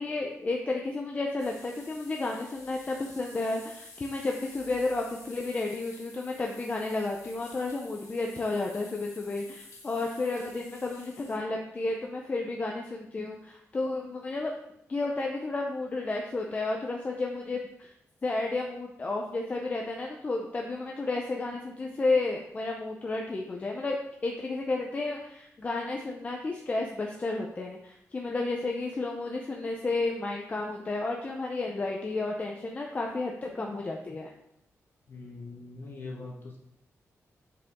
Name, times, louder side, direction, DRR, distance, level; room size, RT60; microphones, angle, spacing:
voice 1, 0.0-14.5 14.9-17.9 18.2-24.0 24.2-34.3, left 3 dB, 25° left, 0 dB, 0.6 m, -32 dB
sound 1, 1.4-11.4, left 3 dB, 90° left, 1.4 m, -51 dB
voice 2, 35.1-36.6, left 3 dB, 45° left, -1 dB, 1.4 m, -42 dB
7.6 x 4.9 x 3.6 m, 0.78 s
wide cardioid pair, 165°, 5 cm